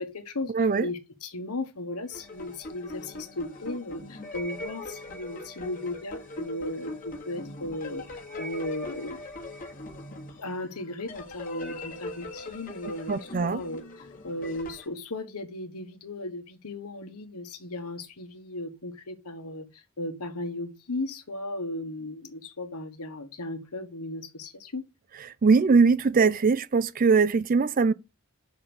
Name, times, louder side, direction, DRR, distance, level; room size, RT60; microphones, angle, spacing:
voice 1, 0.0-0.5 0.8-9.2 10.4-24.8, left 2 dB, 85° left, 1.3 m, -36 dB
voice 2, 0.5-0.9 13.1-13.6 25.4-27.9, right 4 dB, 40° right, 0.4 m, -21 dB
sound 1, 2.0-14.9, left 2 dB, 40° left, 1.5 m, -41 dB
5.9 x 5.2 x 6.1 m
head